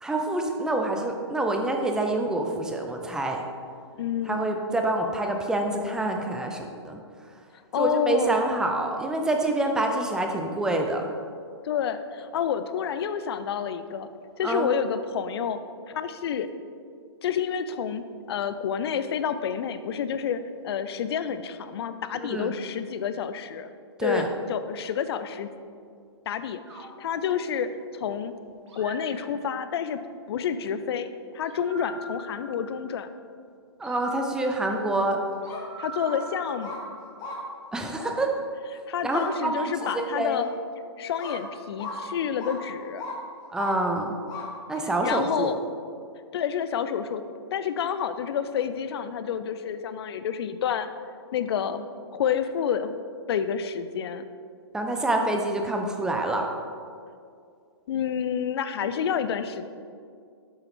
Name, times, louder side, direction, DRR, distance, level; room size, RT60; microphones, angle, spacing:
voice 1, 0.0-3.4 4.3-7.0 7.8-11.1 14.4-14.7 22.2-22.5 24.0-24.3 33.8-35.2 37.7-38.3 39.0-40.5 43.5-44.1 44.7-45.6 54.7-56.5, right 2 dB, 5° right, 3 dB, 0.5 m, -27 dB
voice 2, 4.0-4.6 7.7-8.3 11.6-14.1 14.4-15.6 15.9-16.5 17.2-23.7 24.0-25.5 26.3-28.3 28.8-30.0 30.3-31.1 31.3-33.1 35.8-36.8 38.9-40.4 41.0-43.0 44.8-45.6 46.3-47.2 47.5-50.9 51.3-51.8 52.1-53.0 53.3-54.2 57.9-59.7, left 8 dB, 60° left, 11 dB, 0.5 m, -29 dB
sound 1, 26.7-28.0 28.7-29.9 31.4-33.1 33.8-37.3, right 2 dB, 85° right, 1.6 m, -44 dB
sound 2, 35.3-35.6 36.0-36.2 36.6-36.8 37.2-37.4 38.0-38.1 39.1-39.3 39.8-40.0 40.4-40.5 41.2-41.4 41.8-42.0 42.4-42.6 43.0-43.2 43.6-43.7 44.3-44.5 45.0-45.1, left 3 dB, 25° left, 1.2 m, -36 dB
7.8 x 5.6 x 3.6 m, 2.3 s
hypercardioid pair, 140°, 15 cm